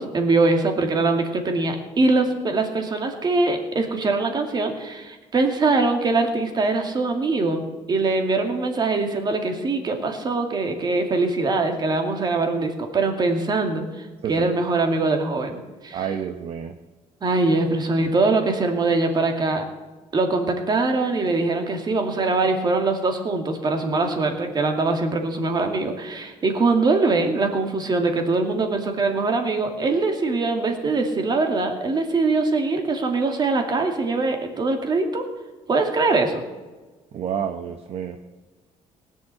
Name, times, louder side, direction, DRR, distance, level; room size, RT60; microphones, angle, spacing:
voice 1, 0.0-7.6 7.9-13.8 14.3-16.1 17.2-19.6 20.1-35.2 35.7-36.4, right 3 dB, 35° right, 4 dB, 2.3 m, -22 dB
voice 2, 15.9-16.7 37.1-38.2, right 8 dB, 50° right, 7 dB, 0.9 m, -29 dB
18.5 x 7.5 x 7.7 m, 1.3 s
cardioid pair, 115°, 13 cm